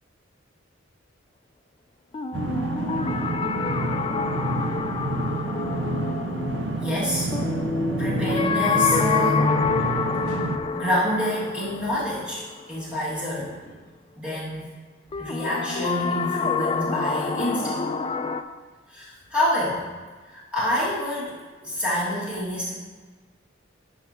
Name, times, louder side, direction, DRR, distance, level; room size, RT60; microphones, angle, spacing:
sound 1, 2.1-13.0 15.1-18.4, left 4 dB, 30° left, 0.3 m, -27 dB
sound 2, 2.3-10.6, right 2 dB, 70° right, 0.4 m, -29 dB
voice 1, 6.8-7.3 8.0-9.9 10.7-13.7 14.2-14.7 15.2-17.8 18.9-19.9 20.3-22.7, equal, 5° right, -10 dB, 1.9 m, -27 dB
12.0 x 5.9 x 2.8 m, 1.4 s
head